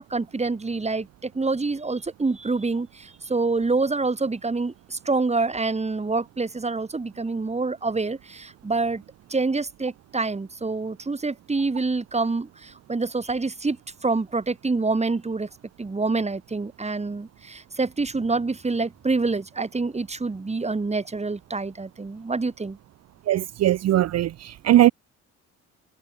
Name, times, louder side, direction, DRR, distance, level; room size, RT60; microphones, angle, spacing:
voice 1, 0.0-9.0 9.3-13.8 14.0-15.5 15.8-22.8, right 3 dB, 20° right, 3.4 m, -26 dB
voice 2, 23.3-24.9, right 13 dB, 55° right, 0.6 m, -20 dB
cardioid pair, 90°, 30 cm